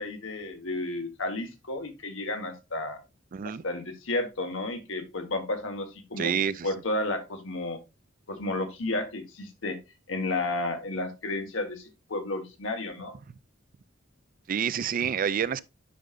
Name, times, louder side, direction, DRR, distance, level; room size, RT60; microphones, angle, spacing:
voice 1, 0.0-3.0 3.6-7.8 8.3-9.8 10.1-13.2, left 2 dB, 80° left, 1.4 m, -32 dB
voice 2, 3.3-3.6 6.2-6.7 14.5-15.6, right 7 dB, 45° right, 0.4 m, -28 dB
10.0 x 5.1 x 2.5 m
head